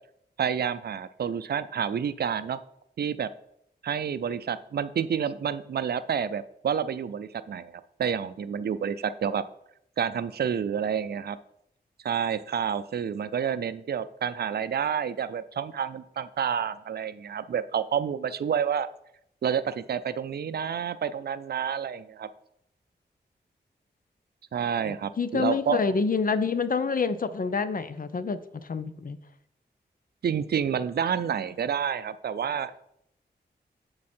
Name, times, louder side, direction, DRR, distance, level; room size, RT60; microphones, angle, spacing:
voice 1, 0.4-2.6 3.0-3.3 3.8-9.4 10.0-11.4 12.0-18.9 19.4-22.3 24.5-25.9 30.2-32.8, right 7 dB, 60° right, 13 dB, 0.4 m, -29 dB
voice 2, 24.8-29.2, left 5 dB, 50° left, 13 dB, 0.6 m, -27 dB
7.2 x 4.8 x 4.3 m, 0.75 s
cardioid pair, 45°, 18 cm